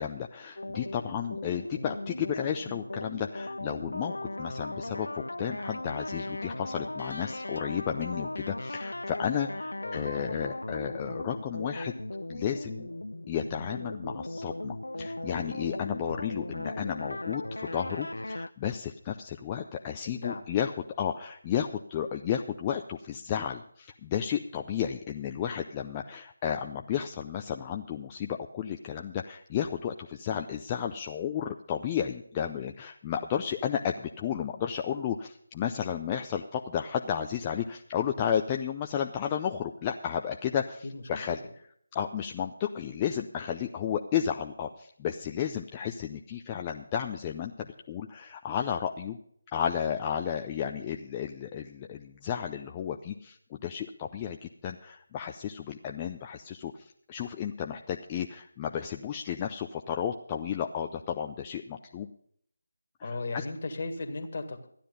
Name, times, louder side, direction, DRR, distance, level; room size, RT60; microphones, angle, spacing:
voice 1, 0.0-11.9 12.3-12.9 13.3-41.4 41.9-49.2 49.5-62.1 63.0-63.4, left 9 dB, 20° left, 3 dB, 0.5 m, -33 dB
sound 1, 0.6-18.5, left 1 dB, 85° left, 0.4 m, -37 dB
voice 2, 9.8-10.3 20.0-20.5 40.9-41.2 63.0-64.7, left 3 dB, 45° left, 5 dB, 1.8 m, -36 dB
13.5 x 10.0 x 5.4 m, 0.65 s
figure-of-eight pair, 160°, 0 cm